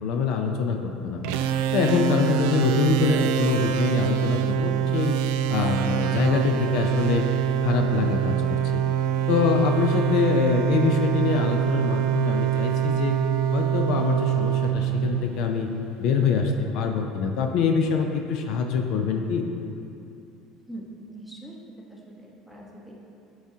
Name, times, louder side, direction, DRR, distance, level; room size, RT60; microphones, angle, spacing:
voice 1, 0.0-1.2 1.7-5.2 5.5-7.2 7.6-8.8 9.3-13.2 13.5-15.7 16.0-19.4, left 5 dB, 65° left, 3 dB, 0.5 m, -24 dB
sound 1, 1.2-15.8, right 9 dB, 85° right, 0.3 m, -25 dB
voice 2, 20.7-21.6 21.9-22.9, right 1 dB, ahead, -3 dB, 1.0 m, -42 dB
10.5 x 4.8 x 2.8 m, 2.7 s
cardioid pair, 130°, 0 cm